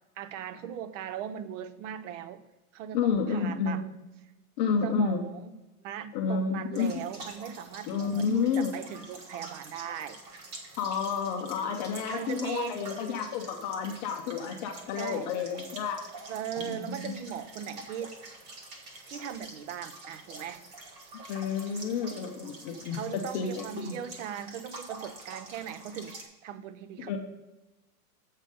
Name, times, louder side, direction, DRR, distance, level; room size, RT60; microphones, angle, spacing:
voice 1, 0.2-2.4 2.7-3.8 4.8-5.5 5.8-10.2 12.1-12.8 15.0-15.3 16.3-18.2 19.1-20.7 22.9-27.2, right 8 dB, 55° right, 12 dB, 0.7 m, -39 dB
voice 2, 2.9-3.8 4.6-5.2 6.1-7.0 7.9-8.8 10.8-16.0 16.6-17.2 21.3-23.0 23.3-24.0 27.1-27.2, left 6 dB, 30° left, 3 dB, 0.6 m, -30 dB
sound 1, 6.7-26.2, right 2 dB, 15° right, 0.4 m, -46 dB
7.4 x 5.1 x 5.1 m, 1.1 s
supercardioid pair, 155°, 45 cm